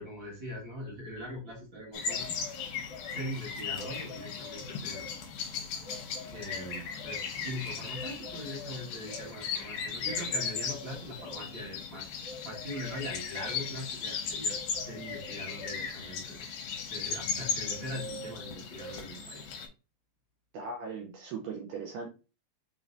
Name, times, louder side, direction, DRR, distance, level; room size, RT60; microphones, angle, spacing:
voice 1, 0.0-2.4 3.1-5.1 6.3-16.5 16.9-19.5, equal, 55° right, -5 dB, 1.3 m, -42 dB
sound 1, 1.9-19.7, left 5 dB, 70° left, 2.5 m, -37 dB
voice 2, 20.5-22.1, right 4 dB, 90° right, 1 dB, 1.8 m, -38 dB
5.9 x 3.2 x 2.6 m, 0.32 s
omnidirectional pair, 4.6 m